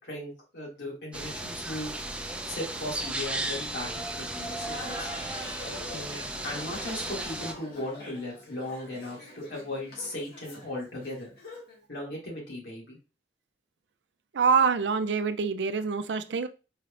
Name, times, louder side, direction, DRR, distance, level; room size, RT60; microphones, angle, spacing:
voice 1, 0.0-1.9 2.4-5.1 5.9-11.3 11.9-13.0, left 1 dB, 80° left, 2.3 m, -37 dB
sound 1, 1.1-7.5, right 1 dB, 5° right, 0.5 m, -35 dB
Laughter, 4.3-11.8, left 1 dB, 60° left, 1.7 m, -44 dB
voice 2, 14.3-16.5, right 5 dB, 80° right, 0.5 m, -25 dB
4.7 x 3.3 x 2.5 m
head